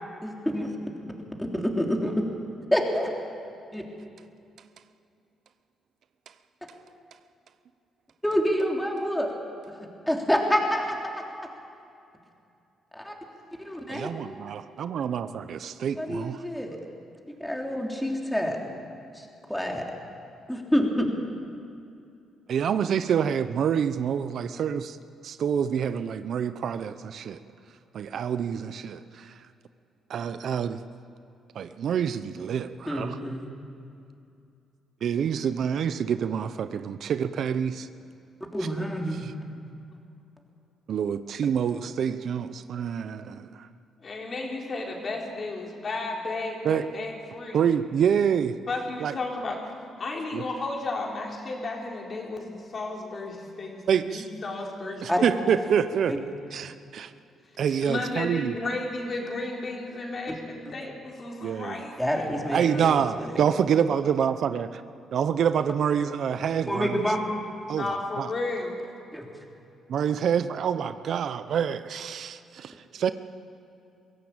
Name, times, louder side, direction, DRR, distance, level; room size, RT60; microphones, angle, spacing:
voice 1, 0.2-0.7 1.5-2.2 2.7-3.1 3.7-3.8 8.2-9.3 10.1-11.1 12.9-13.1 13.6-14.1 16.0-16.8 17.4-18.6 19.1-19.2 19.5-19.8 20.5-21.1 32.9-33.5 38.5-39.3 55.1-55.2 56.1-56.2 62.0-63.4 66.7-67.2 69.1-69.2, equal, 5° left, 0 dB, 3.5 m, -27 dB
voice 2, 13.9-16.4 22.5-25.0 25.2-27.4 27.9-29.3 30.1-30.8 31.5-33.2 35.0-37.9 39.2-39.3 40.9-43.7 46.6-46.8 47.5-48.6 49.0-49.1 50.3-50.4 53.9-54.2 55.0-56.1 56.5-57.1 57.6-58.5 61.4-61.8 62.5-64.8 65.1-67.0 67.7-68.3 69.9-73.1, right 8 dB, 65° right, 12 dB, 0.7 m, -27 dB
voice 3, 44.0-47.7 48.7-49.6 50.0-55.4 57.7-62.9 67.8-68.8, left 2 dB, 45° left, 0 dB, 3.9 m, -33 dB
22.0 x 16.0 x 8.9 m, 2.6 s
cardioid pair, 90°, 0 cm